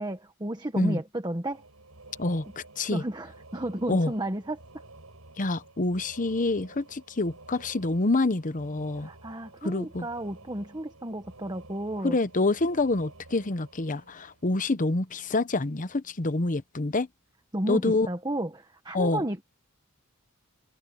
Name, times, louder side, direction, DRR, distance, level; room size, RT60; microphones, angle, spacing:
voice 1, 0.0-1.6 2.9-4.6 9.0-12.2 17.5-19.4, right 1 dB, 20° right, 1.3 m, -32 dB
sound 1, 1.5-15.0, right 2 dB, 80° right, 6.7 m, -52 dB
voice 2, 2.2-3.0 3.9-4.1 5.4-9.1 9.6-10.1 12.0-17.1 17.7-18.1 18.9-19.2, left 2 dB, 35° left, 0.9 m, -27 dB
head